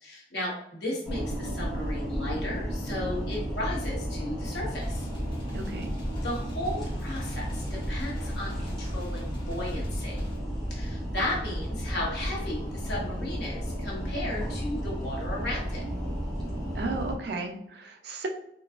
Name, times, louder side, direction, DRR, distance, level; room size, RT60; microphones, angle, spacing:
voice 1, 0.0-5.1 6.2-10.2 10.7-15.8, left 1 dB, 75° left, -4 dB, 1.2 m, -35 dB
sound 1, 1.0-17.1, equal, ahead, 0.9 m, -33 dB
sound 2, 4.8-10.4, equal, 30° left, 0.9 m, -43 dB
voice 2, 5.5-5.9 16.7-18.3, right 3 dB, 70° right, 4 dB, 0.5 m, -34 dB
3.8 x 2.3 x 2.4 m, 0.74 s
head